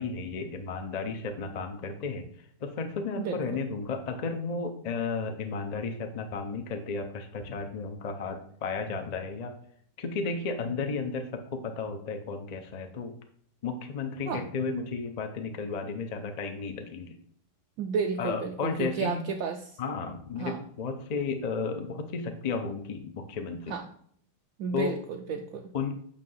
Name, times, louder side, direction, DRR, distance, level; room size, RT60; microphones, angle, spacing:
voice 1, 0.0-2.3 2.6-9.5 10.0-13.1 13.6-17.1 18.2-19.2 19.8-23.8 24.7-25.0 25.7-25.9, left 4 dB, 70° left, 6 dB, 0.3 m, -33 dB
voice 2, 3.2-3.6 14.3-14.5 17.8-19.8 20.4-20.6 23.7-23.9 24.6-25.7, right 5 dB, 70° right, 3 dB, 0.8 m, -32 dB
8.5 x 2.8 x 5.5 m, 0.65 s
omnidirectional pair, 1.9 m